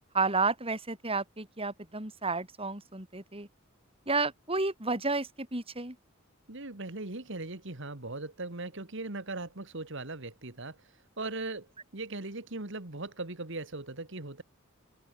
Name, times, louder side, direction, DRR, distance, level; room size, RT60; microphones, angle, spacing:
voice 1, 0.1-3.5 4.1-6.0, right 3 dB, 30° right, 6.8 m, -31 dB
voice 2, 6.5-11.7 11.9-14.4, right 2 dB, 65° right, 2.4 m, -39 dB
open air
head